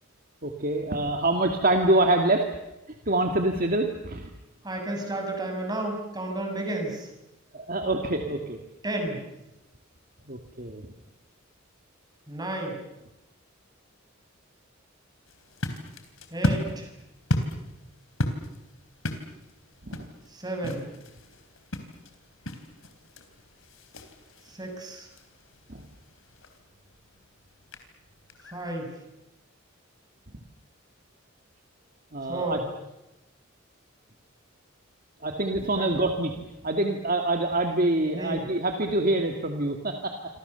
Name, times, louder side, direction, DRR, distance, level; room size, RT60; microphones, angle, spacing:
voice 1, 0.4-2.5 3.1-4.3 7.5-8.6 10.3-10.9 19.8-20.1 25.7-25.8 32.1-32.6 35.2-40.2, right 2 dB, 45° right, 4 dB, 2.2 m, -26 dB
voice 2, 4.6-7.1 8.8-9.2 12.3-12.8 16.3-16.9 20.3-20.9 24.5-25.1 28.5-28.9 32.3-32.6 35.8-35.9 38.1-38.4, right 1 dB, 20° right, 3 dB, 7.0 m, -32 dB
sound 1, 15.3-28.8, left 1 dB, 75° left, 3.6 m, -35 dB
28.0 x 26.0 x 7.0 m, 0.95 s
head